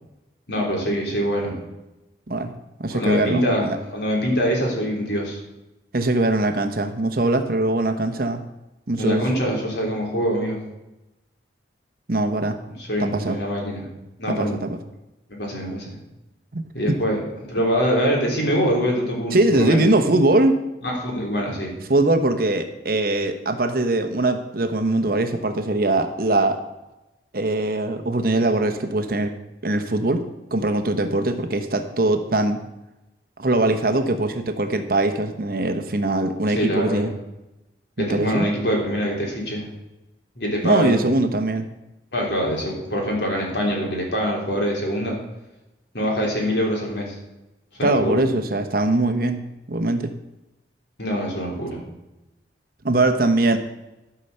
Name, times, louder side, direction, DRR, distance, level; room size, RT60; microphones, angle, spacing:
voice 1, 0.5-1.6 2.9-5.4 8.9-10.6 12.7-13.9 14.2-14.7 15.3-16.0 16.7-17.2 17.5-19.9 20.8-21.7 36.6-37.1 38.0-39.7 40.4-41.0 42.1-45.2 45.9-47.2 47.8-48.2 51.0-51.8, equal, 70° left, -1 dB, 3.5 m, -24 dB
voice 2, 2.8-3.8 5.9-8.4 8.9-9.3 12.1-12.6 13.0-13.4 14.3-14.8 16.5-16.6 16.9-17.0 19.3-20.6 21.9-26.6 27.3-29.3 29.6-30.2 30.5-32.6 33.4-37.1 38.0-38.5 40.6-41.7 47.8-49.4 49.7-50.1 52.8-53.6, right 2 dB, 50° right, 8 dB, 1.0 m, -21 dB
13.0 x 5.8 x 6.7 m, 0.97 s
head